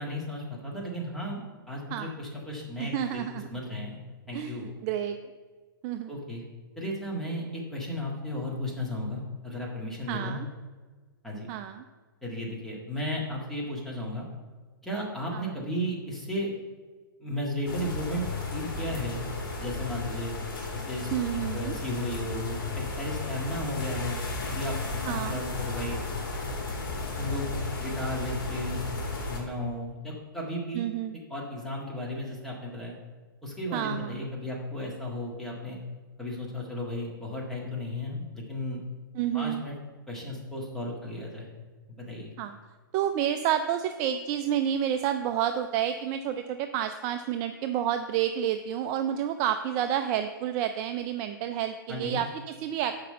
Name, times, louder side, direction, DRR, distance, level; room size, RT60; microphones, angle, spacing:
voice 1, 0.0-4.0 4.3-4.7 6.1-6.4 6.8-10.4 11.2-11.5 12.2-14.3 14.8-16.5 17.2-18.2 18.5-19.2 19.6-20.3 20.7-24.2 24.5-26.0 27.2-27.5 27.8-30.9 31.3-33.0 33.4-35.8 36.2-38.8 39.3-39.7 40.1-41.5 42.0-42.3 51.9-52.2, left 1 dB, 5° left, -4 dB, 1.7 m, -34 dB
voice 2, 2.8-3.4 4.3-5.2 5.8-6.1 10.1-10.5 11.5-11.8 15.3-15.5 21.1-21.8 25.1-25.4 30.7-31.2 33.7-34.2 39.1-39.6 42.4-42.6 42.9-53.1, right 10 dB, 30° right, 8 dB, 0.3 m, -30 dB
sound 1, 17.6-29.4, left 3 dB, 65° left, 2.7 m, -34 dB
6.0 x 5.1 x 6.6 m, 1.4 s
hypercardioid pair, 135°, 12 cm